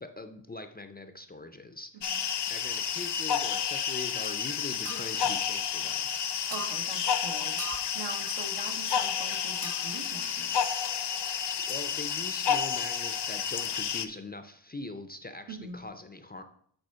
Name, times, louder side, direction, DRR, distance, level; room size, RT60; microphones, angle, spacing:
voice 1, 0.0-1.9 2.3-6.1 11.2-16.4, left 2 dB, 20° left, 8 dB, 0.4 m, -42 dB
sound 1, 2.0-14.1, left 8 dB, 65° left, 0.6 m, -31 dB
sound 2, 4.8-5.1 6.5-6.8 7.6-7.9 9.6-10.0, right 5 dB, 35° right, 0.6 m, -40 dB
voice 2, 6.5-10.8 15.5-15.8, right 4 dB, 75° right, 5 dB, 1.2 m, -43 dB
7.9 x 4.3 x 5.5 m, 0.64 s
wide cardioid pair, 160°, 45 cm